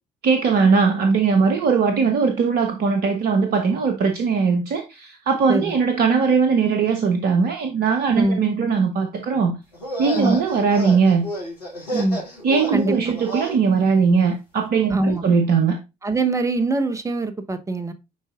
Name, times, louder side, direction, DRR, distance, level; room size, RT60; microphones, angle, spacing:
voice 1, 0.2-9.6 10.0-11.3 12.4-15.8, right 5 dB, 50° right, 1.0 m, -19 dB
sound 1, 9.7-13.6, right 1 dB, 85° left, 1.6 m, -31 dB
voice 2, 11.9-12.2 12.7-12.9 14.9-15.2 16.0-17.9, right 2 dB, 15° right, 0.9 m, -23 dB
9.8 x 4.0 x 2.4 m
figure-of-eight pair, 50°, 20 cm